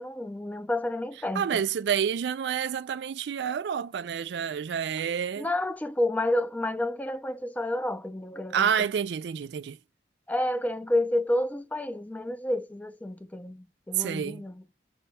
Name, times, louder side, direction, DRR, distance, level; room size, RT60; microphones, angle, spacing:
voice 1, 0.0-1.6 5.4-8.9 10.3-14.6, left 1 dB, 10° left, 0.4 m, -30 dB
voice 2, 1.3-5.5 8.5-9.8 14.0-14.4, right 8 dB, 70° right, 0.3 m, -28 dB
5.3 x 2.2 x 3.3 m
head